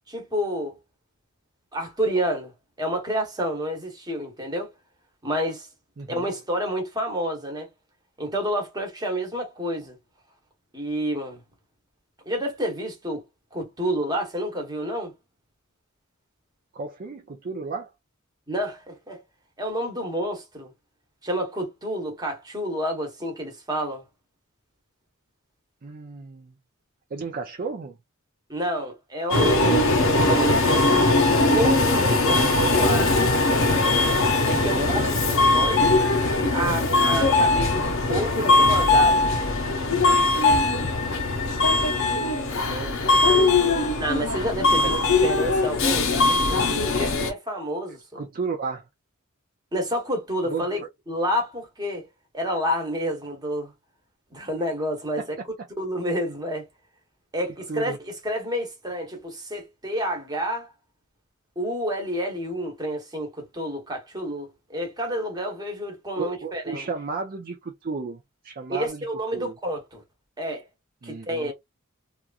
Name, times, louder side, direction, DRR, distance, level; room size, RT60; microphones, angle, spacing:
voice 1, 0.1-0.8 1.7-2.5 2.8-4.7 5.2-5.7 6.1-7.7 8.2-10.0 10.7-11.4 12.2-13.2 13.5-15.1 18.5-19.2 19.6-20.7 21.2-24.0 28.5-29.9 30.2-31.2 31.5-33.3 34.5-35.0 35.5-36.0 36.5-39.3 44.0-48.2 49.7-50.8 51.1-52.1 52.3-53.7 54.3-55.2 55.8-56.7 57.3-58.0 58.2-60.7 61.6-66.9 68.7-70.0 70.4-70.6 71.0-71.5, equal, 20° right, 1.1 m, -29 dB
voice 2, 6.0-6.3 16.7-17.9 25.8-26.5 27.1-28.0 34.7-35.4 41.8-44.0 44.8-45.5 48.1-48.8 50.4-50.9 55.2-55.3 57.5-58.0 66.2-69.0 69.3-69.5 71.0-71.5, right 4 dB, 45° right, 0.5 m, -34 dB
Subway metro underground, 29.3-47.3, left 2 dB, 65° left, 0.7 m, -20 dB
2.9 x 2.4 x 2.4 m
head